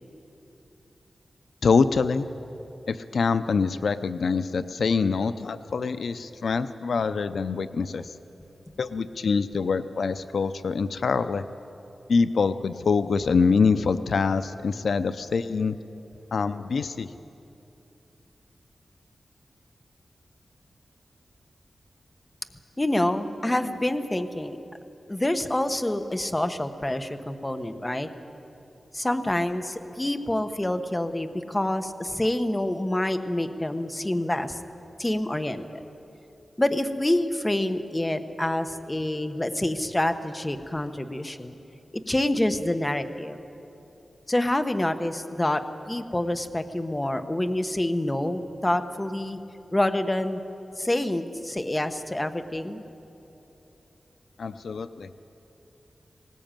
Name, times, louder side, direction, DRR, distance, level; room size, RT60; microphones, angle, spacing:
voice 1, 1.6-2.3 2.9-8.1 8.8-11.4 12.1-15.8 16.3-17.1 54.4-55.1, left 5 dB, 80° left, 12 dB, 0.6 m, -25 dB
voice 2, 22.8-24.6 25.1-28.1 28.9-34.6 35.0-35.8 36.6-41.6 42.1-43.4 44.3-49.4 49.7-50.4 50.8-52.8, left 1 dB, 15° left, 8 dB, 1.0 m, -27 dB
19.5 x 18.5 x 9.0 m, 3.0 s
wide cardioid pair, 115°, 0 cm